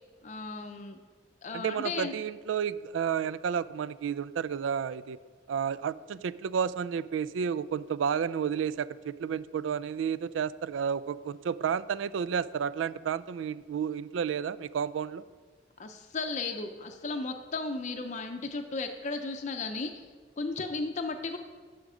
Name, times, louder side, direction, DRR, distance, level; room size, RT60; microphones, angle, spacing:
voice 1, 0.2-1.0 1.4-2.1 15.8-20.1 20.4-21.4, left 3 dB, 40° left, 5 dB, 0.5 m, -35 dB
voice 2, 1.5-5.2 5.5-15.2, right 7 dB, 90° right, 17 dB, 0.3 m, -31 dB
11.5 x 5.1 x 4.8 m, 1.5 s
head